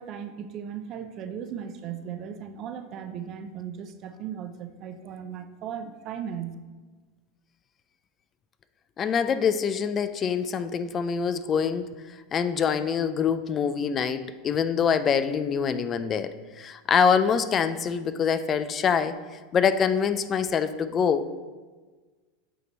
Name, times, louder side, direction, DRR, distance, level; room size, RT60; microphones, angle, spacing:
voice 1, 0.0-6.6, right 8 dB, 45° right, 10 dB, 0.5 m, -37 dB
voice 2, 9.0-11.9 12.3-19.2 19.5-21.3, left 7 dB, 35° left, 13 dB, 0.3 m, -25 dB
8.3 x 2.9 x 3.9 m, 1.4 s
hypercardioid pair, 100°, 0 cm